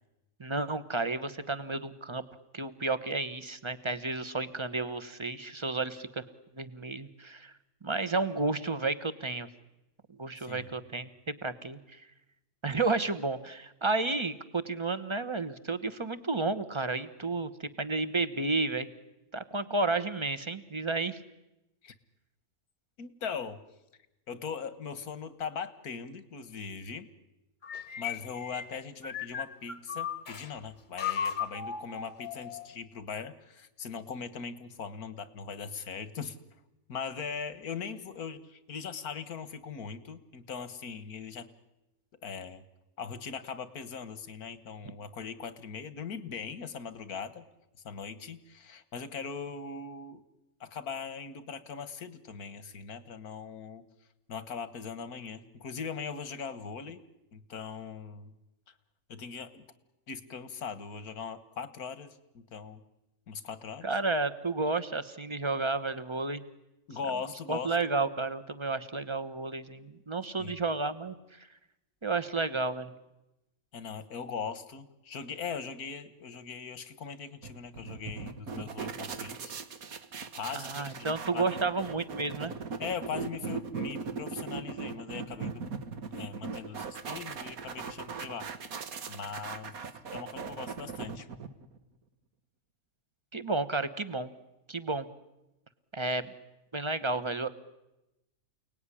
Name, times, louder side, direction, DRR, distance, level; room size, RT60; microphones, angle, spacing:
voice 1, 0.4-2.2 2.5-6.2 6.5-7.5 7.8-9.5 10.2-11.1 11.4-12.0 12.6-18.9 19.3-21.2 63.8-66.4 67.5-71.1 72.0-72.9 80.5-82.5 93.3-94.3 94.7-95.1 95.9-96.3 96.7-97.5, right 3 dB, 20° right, 12 dB, 1.1 m, -31 dB
voice 2, 10.4-10.7 21.8-22.0 23.0-23.6 24.3-27.1 28.0-36.4 36.9-41.5 42.2-42.6 43.0-47.4 47.8-50.2 50.6-53.8 54.3-57.0 57.3-58.3 58.7-58.8 59.1-59.7 60.1-62.8 63.3-63.8 66.9-67.8 70.4-70.6 73.7-79.5 80.3-81.7 82.8-85.6 86.1-88.5 89.1-89.7 90.1-91.3, left 6 dB, 90° left, 14 dB, 2.0 m, -40 dB
sound 1, 27.6-30.5 31.0-32.8, left 7 dB, 35° left, 1.2 m, -36 dB
sound 2, 77.4-91.8, right 5 dB, 75° right, 1.9 m, -39 dB
29.0 x 19.0 x 10.0 m, 0.96 s
omnidirectional pair, 1.5 m